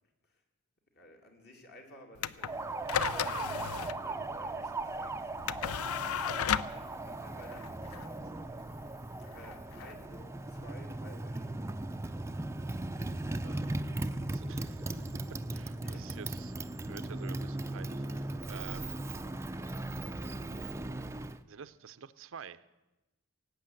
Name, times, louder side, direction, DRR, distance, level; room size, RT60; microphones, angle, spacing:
voice 1, 0.9-8.6 9.3-11.6 15.8-16.2, left 1 dB, 50° left, 2 dB, 2.4 m, -55 dB
sound 1, 2.2-10.6, left 8 dB, 80° left, 0.5 m, -36 dB
Motorcycle, 2.4-21.4, right 2 dB, 10° right, 0.4 m, -38 dB
voice 2, 13.4-16.5 16.9-19.3 21.5-22.7, right 6 dB, 60° right, 13 dB, 0.5 m, -50 dB
18.0 x 8.5 x 7.7 m, 1.0 s
head